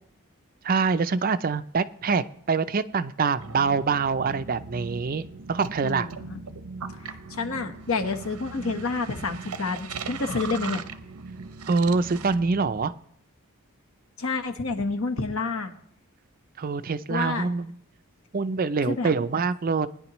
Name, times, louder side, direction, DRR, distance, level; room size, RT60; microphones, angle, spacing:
voice 1, 0.6-6.1 11.6-12.9 16.6-17.7 18.3-19.9, right 4 dB, 40° right, 13 dB, 0.4 m, -25 dB
sound 1, 3.4-12.9, right 4 dB, 85° right, 0.8 m, -39 dB
voice 2, 5.8-6.3 7.0-10.8 14.2-15.7 17.1-17.5 18.9-19.1, left 3 dB, 70° left, 6 dB, 1.1 m, -29 dB
20.5 x 10.0 x 3.0 m, 0.69 s
head